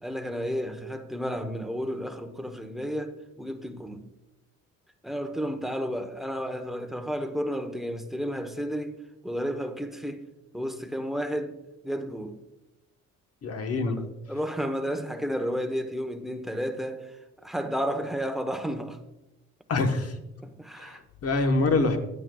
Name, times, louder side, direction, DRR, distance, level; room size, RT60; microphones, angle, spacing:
voice 1, 0.0-4.0 5.0-10.2 10.5-11.6 11.8-12.4 13.8-19.0 20.4-21.0, equal, ahead, 0.9 m, -32 dB
voice 2, 13.4-14.0 19.7-20.1 21.2-22.0, left 3 dB, 55° left, 1.2 m, -24 dB
12.5 x 8.9 x 2.3 m
cardioid pair, 90°, 30 cm